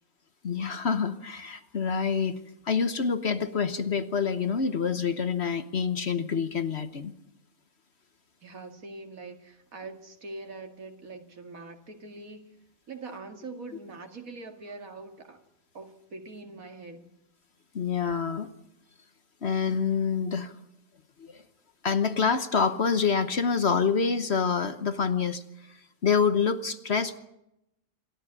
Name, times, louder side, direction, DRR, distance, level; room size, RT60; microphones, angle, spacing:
voice 1, 0.4-2.4 2.6-7.1 17.7-18.5 19.4-20.5 21.2-21.4 21.8-27.2, left 6 dB, 50° left, 1.2 m, -27 dB
voice 2, 8.4-12.6 12.9-15.4 15.7-17.1, right 3 dB, 75° right, 2.5 m, -43 dB
27.5 x 13.5 x 9.9 m
omnidirectional pair, 1.5 m